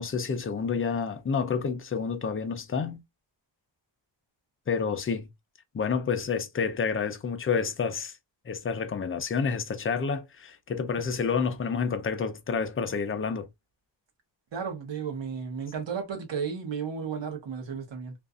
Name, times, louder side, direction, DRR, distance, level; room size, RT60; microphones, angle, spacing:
voice 1, 0.0-3.0 4.7-5.3 5.7-8.1 8.5-13.5, left 5 dB, 30° left, 0.4 m, -29 dB
voice 2, 14.5-18.1, right 6 dB, 70° right, 1.0 m, -33 dB
2.6 x 2.3 x 2.3 m
wide cardioid pair, 115°, 46 cm